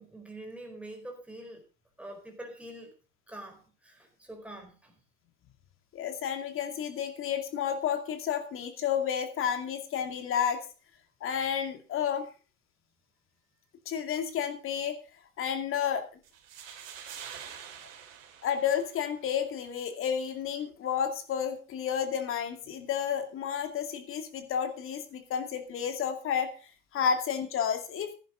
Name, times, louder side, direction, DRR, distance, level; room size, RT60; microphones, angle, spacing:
voice 1, 0.0-1.6 2.0-2.9 3.3-4.9 27.0-27.1, right 1 dB, 5° right, 2 dB, 4.5 m, -45 dB
voice 2, 5.9-10.6 11.2-12.3 13.9-15.0 15.4-16.0 18.4-26.5 26.9-28.1, left 8 dB, 30° left, 7 dB, 2.4 m, -31 dB
sound 1, 16.2-19.3, right 8 dB, 55° right, 4.0 m, -46 dB
15.5 x 11.0 x 3.8 m, 0.35 s
hypercardioid pair, 105°, 46 cm